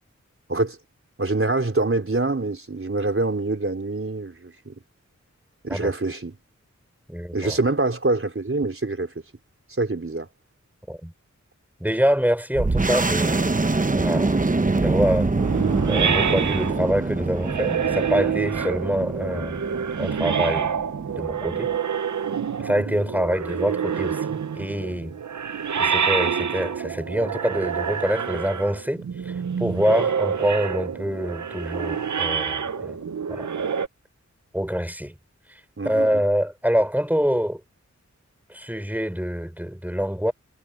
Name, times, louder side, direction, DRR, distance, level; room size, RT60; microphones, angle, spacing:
voice 1, 1.2-4.8 5.6-6.3 7.3-9.1 9.7-10.3 35.8-36.2, right 2 dB, 45° right, 4.1 m, -25 dB
voice 2, 7.1-7.6 10.9-11.1 11.8-13.6 13.9-14.4 14.7-15.3 15.9-19.6 20.0-20.7 21.2-21.7 22.6-25.2 25.8-33.0 33.3-33.5 34.5-35.1 35.8-37.6 38.5-40.3, equal, 5° right, 4.1 m, -25 dB
sound 1, 12.6-21.8, right 3 dB, 30° right, 0.9 m, -25 dB
sound 2, 15.4-33.9, right 7 dB, 80° right, 0.7 m, -27 dB
wide cardioid pair, 65°, 29 cm